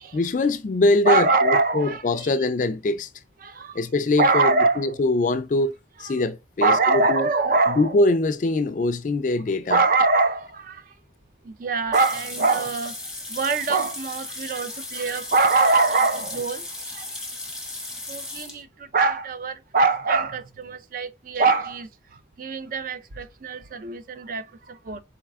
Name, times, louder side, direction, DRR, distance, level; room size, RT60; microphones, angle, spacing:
voice 1, 0.1-3.1 3.7-5.7 6.0-7.3 7.8-9.8, left 2 dB, 45° left, 0.3 m, -23 dB
voice 2, 1.0-2.3 3.4-3.8 4.2-4.9 6.0-6.1 6.6-8.1 9.7-10.8 11.4-13.0 13.3-16.6 16.9-17.1 18.1-21.9 22.4-25.0, right 3 dB, 45° right, 0.4 m, -23 dB
sound 1, 11.9-18.6, left 2 dB, 5° right, 0.8 m, -36 dB
4.3 x 4.0 x 2.3 m
head